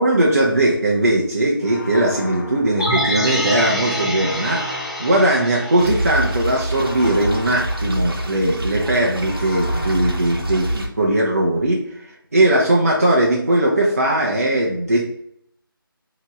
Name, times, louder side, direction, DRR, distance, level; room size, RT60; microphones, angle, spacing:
voice 1, 0.0-11.8 12.3-15.0, right 1 dB, 40° right, -3 dB, 0.6 m, -19 dB
sound 1, 1.6-3.5 4.1-5.9 6.6-8.5 9.2-11.1, left 2 dB, 60° left, 1.1 m, -37 dB
sound 2, 2.8-7.0 7.3-7.4, equal, 10° left, 0.5 m, -26 dB
sound 3, 5.8-10.9, right 1 dB, 80° right, 1.0 m, -25 dB
3.4 x 2.9 x 4.1 m, 0.70 s
figure-of-eight pair, 175°, 12 cm